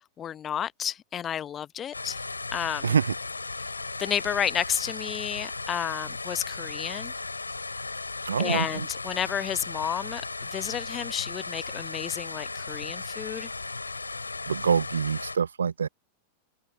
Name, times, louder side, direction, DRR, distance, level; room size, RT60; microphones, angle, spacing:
voice 1, 0.2-2.2 2.5-2.9 4.0-7.1 8.4-10.2 10.5-13.5, left 9 dB, 25° left, 0.8 m, -31 dB
sound 1, 1.9-15.4, left 3 dB, 80° left, 4.3 m, -36 dB
voice 2, 2.8-3.1 8.2-8.9 14.5-15.9, right 6 dB, 70° right, 0.9 m, -25 dB
figure-of-eight pair, 90°, 0 cm